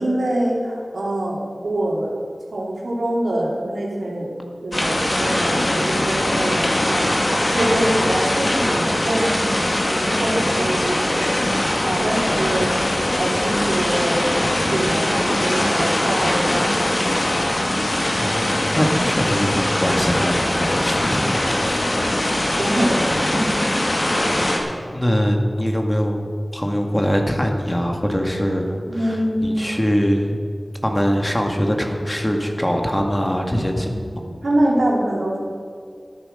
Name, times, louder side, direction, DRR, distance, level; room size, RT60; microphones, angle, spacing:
voice 1, 0.0-2.1 2.5-4.3 4.6-7.0 7.5-11.3 11.8-12.8 13.2-14.2 14.7-17.5 22.6-23.0 23.3-23.5 28.9-29.8 33.8-35.4, right 1 dB, 90° right, -3 dB, 2.8 m, -24 dB
sound 1, 4.7-24.6, left 1 dB, 50° left, 2.2 m, -21 dB
voice 2, 18.2-21.9 24.9-30.4 30.8-34.3, equal, 20° left, 2 dB, 1.9 m, -22 dB
13.5 x 9.4 x 6.6 m, 2.2 s
wide cardioid pair, 45°, 0 cm